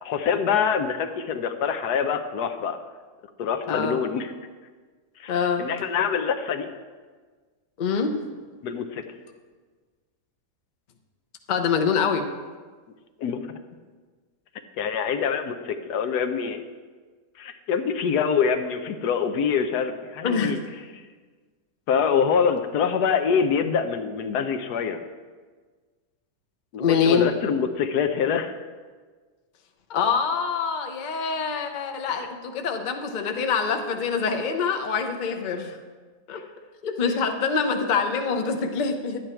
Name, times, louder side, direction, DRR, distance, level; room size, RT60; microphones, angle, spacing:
voice 1, 0.0-2.8 3.4-4.3 5.2-5.3 5.6-6.7 8.6-9.0 13.2-13.5 14.8-16.6 17.4-20.6 20.9-21.0 21.9-25.0 26.7-28.5 36.3-36.4, left 6 dB, 80° left, 7 dB, 1.3 m, -25 dB
voice 2, 3.7-4.0 5.3-5.7 7.8-8.2 11.5-12.3 20.2-20.6 26.8-27.3 29.9-35.8 36.3-36.4 36.8-39.2, left 5 dB, 40° left, 5 dB, 0.7 m, -25 dB
11.0 x 9.2 x 4.4 m, 1.4 s
omnidirectional pair, 1.7 m